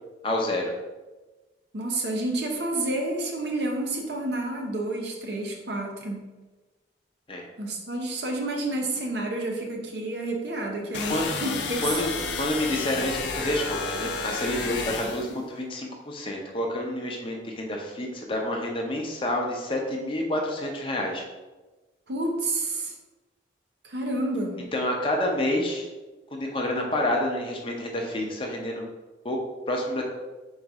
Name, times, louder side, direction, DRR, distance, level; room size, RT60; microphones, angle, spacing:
voice 1, 0.2-0.7 7.3-7.4 11.1-11.3 11.8-21.2 24.7-25.9 26.3-28.9 29.2-29.4 29.7-30.0, left 1 dB, 30° left, 1 dB, 0.6 m, -28 dB
voice 2, 1.7-6.3 7.6-11.9 15.2-15.4 22.1-22.9 23.8-24.7, right 2 dB, 70° right, 1 dB, 0.8 m, -29 dB
sound 1, 10.9-15.4, left 4 dB, 85° left, 0.5 m, -31 dB
4.0 x 2.5 x 4.7 m, 1.2 s
head